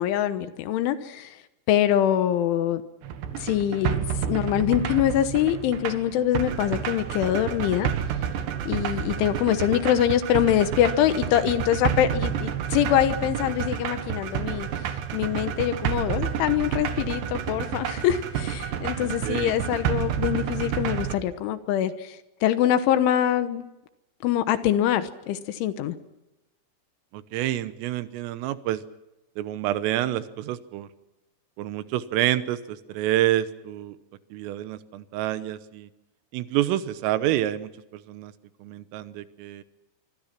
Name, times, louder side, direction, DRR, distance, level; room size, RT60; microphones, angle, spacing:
voice 1, 0.0-1.3 1.7-2.8 3.4-7.9 8.7-14.7 15.1-23.7 24.2-26.0, left 11 dB, 75° left, 11 dB, 3.5 m, -24 dB
sound 1, 3.0-21.1, right 9 dB, 65° right, 3.3 m, -30 dB
voice 2, 19.0-19.5 27.1-28.8 29.4-30.9 31.6-34.0 34.3-35.9 36.3-38.3 38.6-39.6, right 13 dB, 85° right, 13 dB, 3.7 m, -28 dB
25.5 x 24.5 x 6.0 m, 0.95 s
omnidirectional pair, 5.8 m